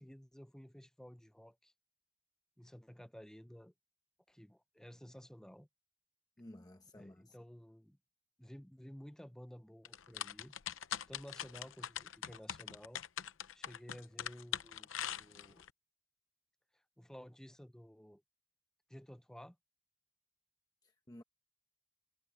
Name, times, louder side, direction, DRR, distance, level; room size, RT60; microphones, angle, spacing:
voice 1, 0.0-1.7 2.6-3.7 4.3-5.7 6.9-8.0 8.4-10.6 11.1-13.0 13.5-14.9 15.2-15.7 16.7-18.2 18.9-19.6, equal, 5° left, 0.6 m, -54 dB
voice 2, 6.4-7.4 20.8-21.2, left 1 dB, 20° left, 0.9 m, -54 dB
sound 1, 9.8-15.7, left 10 dB, 90° left, 0.7 m, -42 dB
head